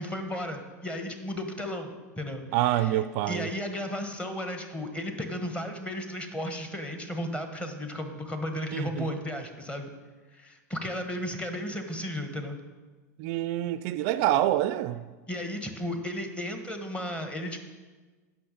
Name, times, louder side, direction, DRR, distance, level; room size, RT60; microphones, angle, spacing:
voice 1, 0.0-3.0 3.3-9.9 10.3-12.6 15.3-17.6, left 1 dB, 10° left, 1.3 m, -34 dB
voice 2, 2.5-3.5 8.7-9.1 13.2-15.0, right 13 dB, 55° right, 0.4 m, -26 dB
8.5 x 5.8 x 6.9 m
hypercardioid pair, 100°, 9 cm